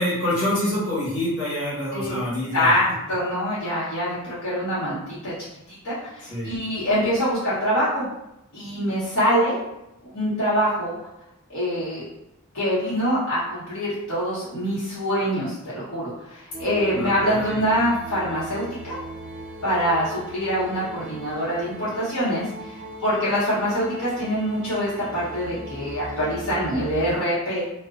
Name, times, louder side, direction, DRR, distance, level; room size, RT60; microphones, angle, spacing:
voice 1, 0.0-2.8 6.2-6.5 17.0-17.6, left 1 dB, 55° left, -9 dB, 1.1 m, -26 dB
voice 2, 2.5-5.3 5.8-8.0 8.5-9.6 10.1-11.0 11.5-12.1 12.5-19.0 19.6-22.5 23.0-27.6, equal, 75° left, -10 dB, 1.0 m, -24 dB
sound 1, 16.5-27.2, right 1 dB, 40° right, 0.4 m, -39 dB
2.4 x 2.1 x 2.4 m, 0.87 s
head